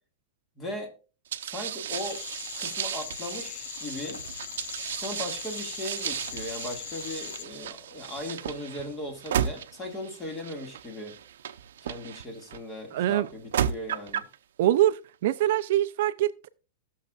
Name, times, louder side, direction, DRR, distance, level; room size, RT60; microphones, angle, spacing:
voice 1, 0.6-0.9 1.4-2.2 2.6-4.2 4.9-11.2 11.8-14.3, left 1 dB, 15° left, 2.2 m, -38 dB
sound 1, 1.3-12.6 13.2-14.4, right 9 dB, 90° right, 0.8 m, -34 dB
sound 2, 1.9-7.5, left 12 dB, 55° left, 0.6 m, -40 dB
voice 2, 12.9-13.3 14.6-16.5, right 13 dB, 55° right, 0.5 m, -24 dB
18.5 x 6.6 x 2.5 m
supercardioid pair, 165°, 0 cm